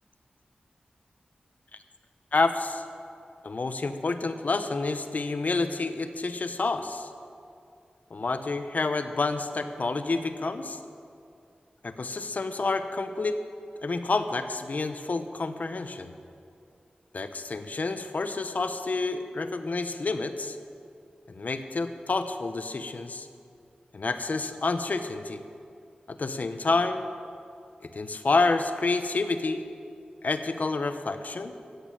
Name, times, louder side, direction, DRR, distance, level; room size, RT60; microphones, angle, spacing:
voice 1, 2.3-2.8 3.4-7.1 8.1-10.8 11.8-13.4 13.8-16.1 17.1-20.6 21.3-23.3 23.9-25.4 26.1-27.0 27.9-29.6 30.2-31.5, left 3 dB, 60° left, 9 dB, 1.0 m, -29 dB
14.5 x 8.5 x 9.0 m, 2.5 s
cardioid pair, 55°, 3 cm